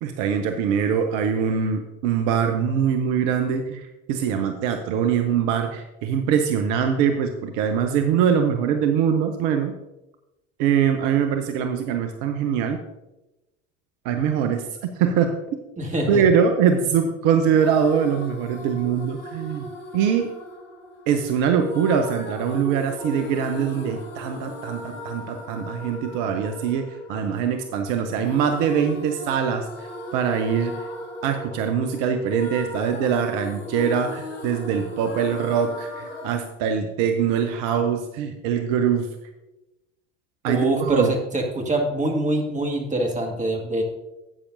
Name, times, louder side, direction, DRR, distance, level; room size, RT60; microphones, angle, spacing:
voice 1, 0.0-9.7 10.6-12.8 14.0-15.4 16.1-19.7 19.9-20.3 21.1-30.9 31.2-39.1 40.4-41.1, right 7 dB, 55° right, 7 dB, 0.8 m, -23 dB
voice 2, 15.8-16.2 40.5-43.8, right 1 dB, 20° right, 1 dB, 2.0 m, -24 dB
sound 1, 17.5-36.3, left 1 dB, 60° left, 2.1 m, -37 dB
12.0 x 8.4 x 2.7 m, 0.97 s
figure-of-eight pair, 70°, 37 cm